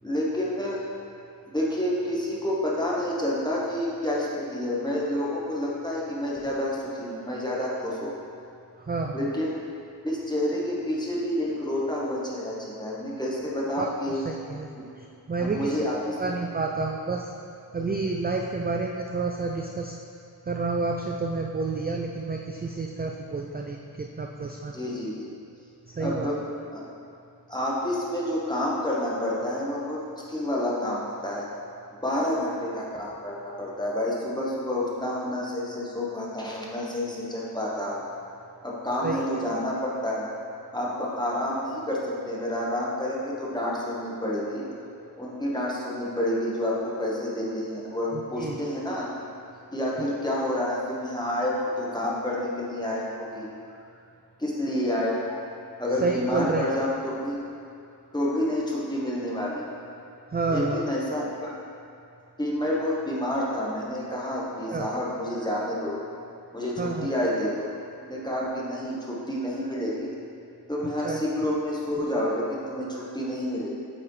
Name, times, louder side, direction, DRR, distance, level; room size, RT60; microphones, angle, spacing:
voice 1, 0.0-0.8 1.5-8.1 9.1-9.6 10.0-14.2 14.7-14.9 15.4-16.4 17.8-17.9 24.7-25.3 26.0-26.4 26.7-26.8 27.5-30.0 30.3-31.4 32.0-38.0 38.6-40.3 40.7-44.7 45.2-49.1 49.7-53.5 54.4-55.4 55.8-57.4 58.1-59.6 60.5-61.5 62.4-66.0 66.5-67.5 68.0-70.1 70.7-73.7, left 1 dB, 10° left, -5 dB, 1.2 m, -29 dB
voice 2, 8.9-9.3 13.8-14.7 15.0-15.8 16.2-17.3 17.7-20.0 20.5-24.7 26.0-26.3 39.0-39.2 48.1-48.6 50.0-50.1 56.0-56.7 60.3-60.8 64.7-64.9 66.8-67.1 71.0-71.2, right 3 dB, 25° right, 1 dB, 0.3 m, -29 dB
8.5 x 4.8 x 3.2 m, 2.6 s
wide cardioid pair, 50°, 41 cm